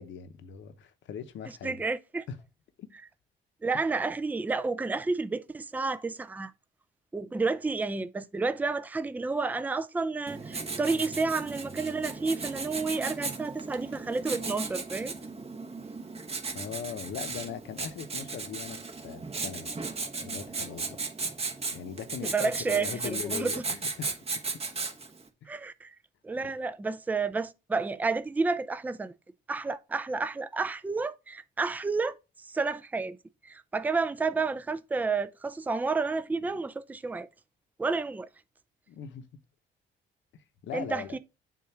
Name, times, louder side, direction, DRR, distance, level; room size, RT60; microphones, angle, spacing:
voice 1, 0.0-1.8 2.3-2.4 2.8-2.9 3.7-3.8 16.5-19.7 20.2-21.0 21.7-24.2 25.4-25.7 26.4-26.5 38.9-39.3 40.6-41.2, left 8 dB, 70° left, 0.8 m, -40 dB
voice 2, 1.6-2.2 3.6-6.5 7.1-15.1 22.2-23.5 25.5-25.9 26.2-29.1 29.5-32.2 32.5-33.2 33.4-37.3 37.8-38.3 40.7-41.2, right 4 dB, 10° right, 0.4 m, -30 dB
Writing, 10.3-25.2, right 4 dB, 30° right, 1.2 m, -36 dB
7.2 x 2.5 x 5.7 m
cardioid pair, 90°, 20 cm